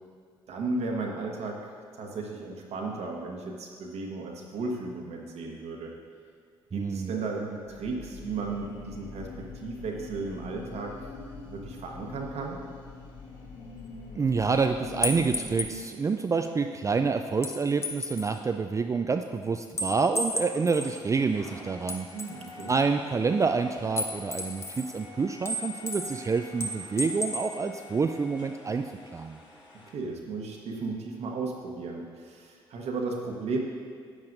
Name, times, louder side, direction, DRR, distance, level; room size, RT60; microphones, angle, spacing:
voice 1, 0.5-1.7 1.9-5.9 6.7-11.1 11.4-12.6 22.1-22.7 29.9-33.6, right 3 dB, 60° right, 0 dB, 1.1 m, -35 dB
voice 2, 6.7-7.1 14.2-22.1 22.7-28.8 29.1-29.4, right 4 dB, 25° right, 6 dB, 0.4 m, -27 dB
sound 1, 7.6-15.7, left 4 dB, 75° left, 2.0 m, -43 dB
sound 2, 15.0-15.8 17.4-18.4 19.8-21.0 21.9-22.8 24.0-25.0 25.5-26.2 26.6-27.5, left 1 dB, 20° left, 1.1 m, -32 dB
sound 3, 20.1-29.9, left 2 dB, 40° left, 2.3 m, -48 dB
9.6 x 8.7 x 2.6 m, 2.1 s
hypercardioid pair, 50°, 13 cm